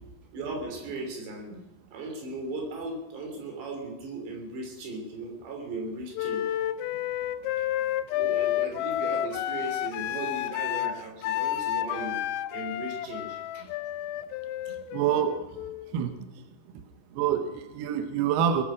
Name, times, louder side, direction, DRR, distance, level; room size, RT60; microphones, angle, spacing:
voice 1, 0.3-1.6 1.9-6.5 7.6-7.7 8.1-12.2 12.5-13.7, right 2 dB, 60° right, 3 dB, 5.1 m, -37 dB
Wind instrument woodwind instrument, 6.1-16.0, left 12 dB, 80° left, 2.8 m, -30 dB
voice 2, 14.7-15.6 15.9-16.4 17.1-18.6, right 8 dB, 80° right, 8 dB, 2.3 m, -27 dB
20.0 x 10.5 x 6.3 m, 0.97 s
omnidirectional pair, 5.7 m